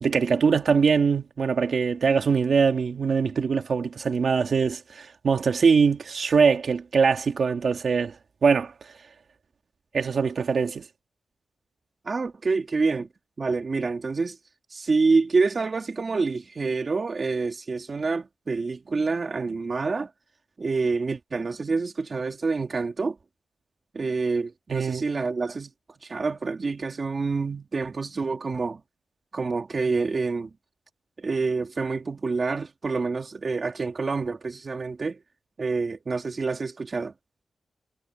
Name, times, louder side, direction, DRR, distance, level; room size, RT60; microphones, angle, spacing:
voice 1, 0.0-8.1 8.4-8.7 9.9-10.8 24.7-25.1, right 5 dB, 60° right, 2.4 m, -22 dB
voice 2, 12.0-13.1 13.4-14.4 14.7-20.1 20.6-23.2 23.9-25.7 26.0-28.8 29.3-30.5 31.2-35.2 35.6-37.1, right 4 dB, 40° right, 2.2 m, -27 dB
wide cardioid pair, 125°, 0 cm